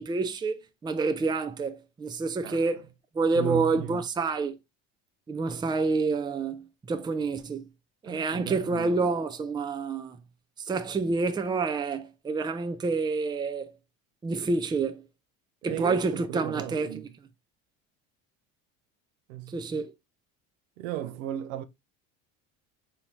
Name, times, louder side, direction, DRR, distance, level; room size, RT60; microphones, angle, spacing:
voice 1, 0.0-2.8 3.1-4.6 5.3-7.6 8.0-10.2 10.6-13.7 14.2-15.0 15.6-16.9 19.5-19.9, right 4 dB, 10° right, 0.4 m, -28 dB
voice 2, 3.3-4.0 8.1-8.9 15.7-17.1 19.3-19.6 20.8-21.6, right 13 dB, 75° right, 0.6 m, -35 dB
3.9 x 2.8 x 3.0 m
hypercardioid pair, 80°, 39 cm